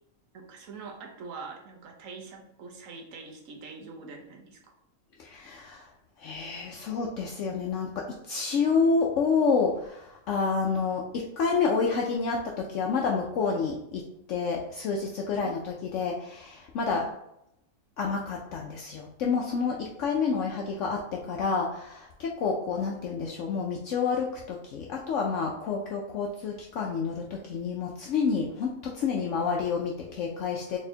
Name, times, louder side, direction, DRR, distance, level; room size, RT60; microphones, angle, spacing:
voice 1, 0.3-4.6 16.8-17.0, right 4 dB, 70° right, 2 dB, 1.2 m, -44 dB
voice 2, 5.2-5.9 6.2-14.0 14.3-17.1 18.0-30.8, left 5 dB, 70° left, -1 dB, 0.9 m, -29 dB
4.0 x 3.5 x 2.7 m, 0.78 s
omnidirectional pair, 1.5 m